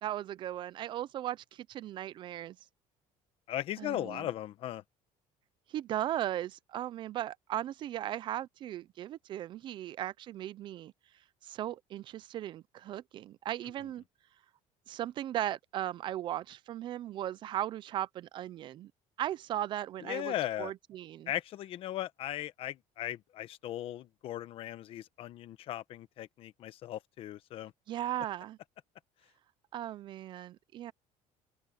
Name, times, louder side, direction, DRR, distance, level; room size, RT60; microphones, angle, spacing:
voice 1, 0.0-2.6 3.8-4.3 5.7-10.9 11.4-14.0 14.9-18.9 19.2-21.3 27.9-28.6 29.7-30.9, right 12 dB, 35° right, 0.4 m, -37 dB
voice 2, 3.5-4.8 20.0-20.7 21.3-27.7, left 13 dB, 45° left, 1.0 m, -38 dB
open air
cardioid pair, 180°, 13 cm